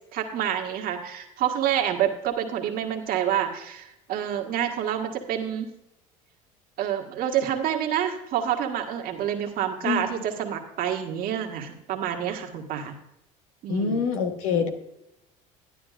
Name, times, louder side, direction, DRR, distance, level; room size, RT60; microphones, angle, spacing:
voice 1, 0.1-5.7 6.8-12.9 13.6-14.0, right 10 dB, 60° right, 3 dB, 1.6 m, -28 dB
voice 2, 13.7-14.7, left 5 dB, 80° left, 6 dB, 1.3 m, -25 dB
11.5 x 10.0 x 2.5 m, 0.83 s
hypercardioid pair, 80°, 17 cm